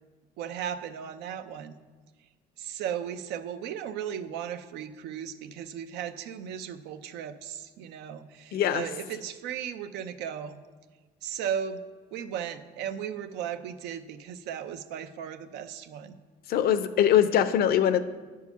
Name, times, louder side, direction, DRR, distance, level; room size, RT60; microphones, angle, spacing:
voice 1, 0.4-1.8 2.6-10.6 11.2-11.8 12.1-16.2, right 9 dB, 90° right, 10 dB, 0.6 m, -36 dB
voice 2, 8.5-8.8 16.5-18.0, left 10 dB, 65° left, 12 dB, 0.6 m, -22 dB
9.6 x 4.7 x 6.9 m, 1.3 s
cardioid pair, 110°, 17 cm